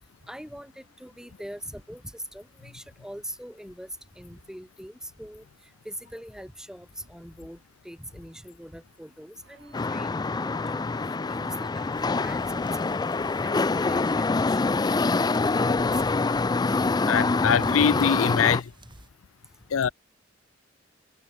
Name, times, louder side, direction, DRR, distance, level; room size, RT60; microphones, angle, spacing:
voice 1, 0.3-3.9 4.2-5.4 5.9-7.6 7.8-10.9 11.3-11.9 12.2-15.4 15.7-15.9, equal, 5° right, 7.1 m, -42 dB
Guitar, 9.4-18.0 18.4-18.7, right 3 dB, 65° right, 4.5 m, -58 dB
sound 1, 9.7-18.6, left 3 dB, 20° left, 0.4 m, -25 dB
sound 2, 11.9-19.1, right 1 dB, 25° right, 7.9 m, -51 dB
voice 2, 17.1-18.7 19.7-19.9, left 7 dB, 80° left, 0.5 m, -23 dB
head